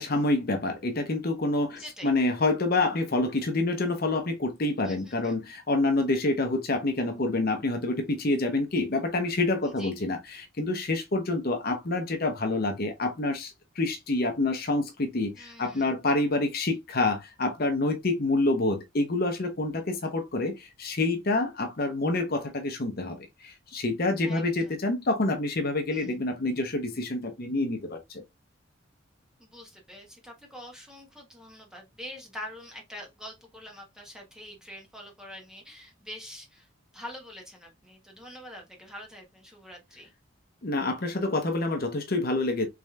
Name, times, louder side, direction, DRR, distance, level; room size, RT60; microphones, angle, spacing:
voice 1, 0.0-28.2 40.6-42.7, left 2 dB, 50° left, 0.8 m, -27 dB
voice 2, 1.8-2.1 4.8-5.4 9.6-9.9 15.3-15.9 24.2-24.7 25.9-26.1 29.4-36.7 36.9-40.1, left 1 dB, 5° right, 1.2 m, -45 dB
4.8 x 3.2 x 2.4 m
head